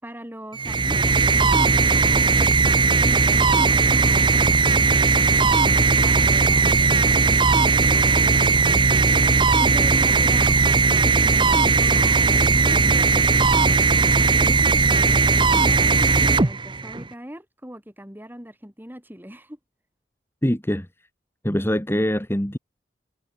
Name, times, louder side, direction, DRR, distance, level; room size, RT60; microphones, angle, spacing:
voice 1, 0.0-1.5 2.9-4.6 5.7-8.5 9.5-10.6 10.9-13.6 14.4-19.6, equal, 10° right, 7.2 m, -39 dB
sound 1, 0.5-17.1, right 4 dB, 25° right, 0.8 m, -18 dB
voice 2, 20.4-20.9 21.4-22.6, equal, 15° left, 2.5 m, -23 dB
head